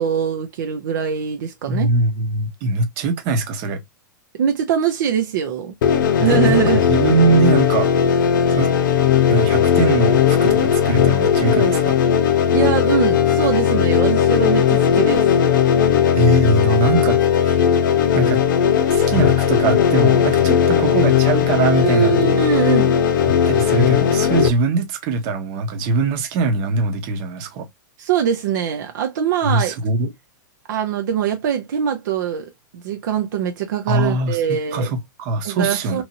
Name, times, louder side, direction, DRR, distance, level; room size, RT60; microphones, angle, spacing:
voice 1, 0.0-1.9 4.4-5.7 6.2-6.8 12.5-15.3 21.8-22.9 28.0-29.8 30.7-34.9 35.4-36.0, right 8 dB, 70° right, 0.7 m, -22 dB
voice 2, 1.7-3.8 6.2-7.9 8.5-8.7 9.3-11.9 16.1-17.6 18.1-18.4 18.9-22.4 23.4-27.7 29.4-30.1 33.9-36.0, right 3 dB, 45° right, 1.0 m, -21 dB
sound 1, 5.8-24.5, left 8 dB, 70° left, 0.6 m, -17 dB
3.0 x 2.7 x 2.6 m
hypercardioid pair, 125°, 11 cm